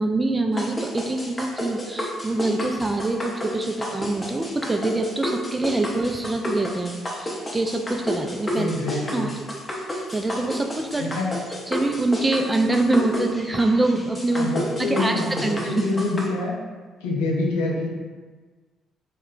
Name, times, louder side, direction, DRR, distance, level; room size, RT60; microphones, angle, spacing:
voice 1, 0.0-8.7 9.1-9.3 10.1-11.1 11.7-14.5 14.8-15.8, right 2 dB, 20° right, 4 dB, 0.3 m, -24 dB
sound 1, 0.6-16.3, left 1 dB, 25° left, 0.6 m, -31 dB
voice 2, 8.5-9.3 11.0-11.3 14.3-16.6 17.0-17.9, left 2 dB, 80° left, -2 dB, 0.5 m, -26 dB
2.2 x 2.1 x 3.7 m, 1.4 s
hypercardioid pair, 50°, 0 cm